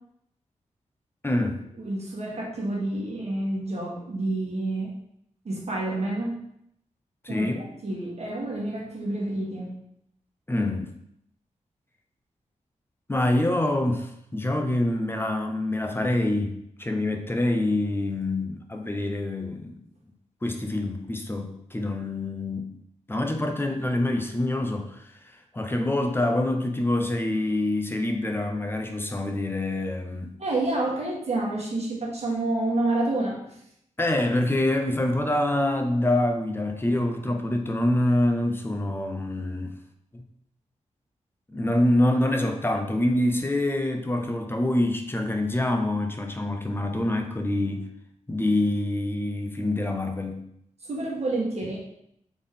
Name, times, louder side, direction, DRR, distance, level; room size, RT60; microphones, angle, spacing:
voice 1, 1.2-1.6 7.2-7.7 10.5-10.9 13.1-19.8 20.4-22.7 23.1-30.3 34.0-39.7 40.1-40.2 41.5-47.9 48.3-50.4, left 1 dB, 15° left, 5 dB, 0.6 m, -26 dB
voice 2, 1.8-4.9 5.4-6.3 7.3-9.7 30.4-33.6 50.8-51.8, right 2 dB, 55° right, -3 dB, 1.4 m, -29 dB
4.1 x 3.5 x 3.6 m, 0.74 s
cardioid pair, 80°, 13 cm